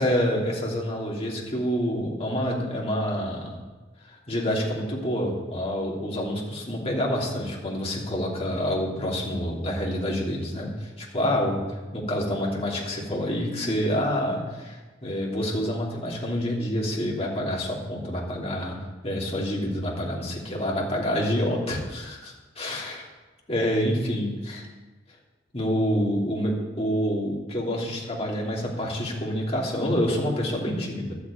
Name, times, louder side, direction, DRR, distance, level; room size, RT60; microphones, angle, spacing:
voice 1, 0.0-3.6 4.0-18.7 19.0-23.1 23.5-24.7 25.5-31.1, equal, 35° left, -2 dB, 3.0 m, -27 dB
12.5 x 8.3 x 8.5 m, 1.2 s
head